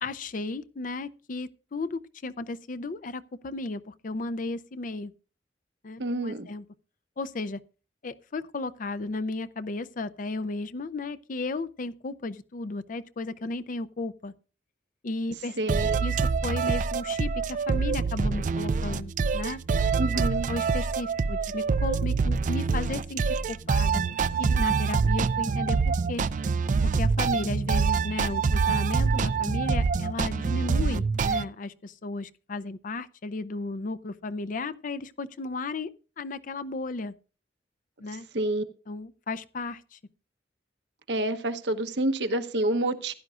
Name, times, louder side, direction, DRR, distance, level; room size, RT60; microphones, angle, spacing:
voice 1, 0.0-5.1 5.8-6.6 7.2-7.6 8.0-14.3 15.0-15.6 16.0-19.6 20.5-24.0 24.4-26.2 26.8-35.9 36.2-37.1 38.0-38.3 38.9-40.0, left 3 dB, 50° left, 0.5 m, -34 dB
voice 2, 6.0-6.5 15.6-15.9 20.0-20.5 38.3-38.6 41.1-43.1, right 1 dB, 75° right, 1.0 m, -28 dB
sound 1, 15.7-31.4, right 5 dB, 45° right, 0.4 m, -26 dB
15.5 x 11.0 x 2.4 m
head